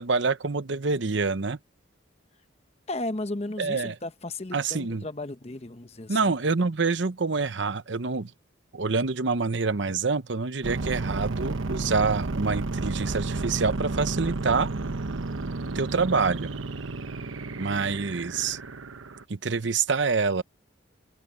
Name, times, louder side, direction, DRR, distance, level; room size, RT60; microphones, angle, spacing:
voice 1, 0.0-1.6 3.6-3.9 4.5-5.0 6.1-8.3 8.7-14.7 15.7-16.5 17.6-18.6 19.3-20.4, right 4 dB, 65° right, 0.8 m, -26 dB
voice 2, 2.9-6.3, left 2 dB, 30° left, 1.0 m, -34 dB
sound 1, 10.6-19.2, right 3 dB, 90° right, 1.1 m, -32 dB
head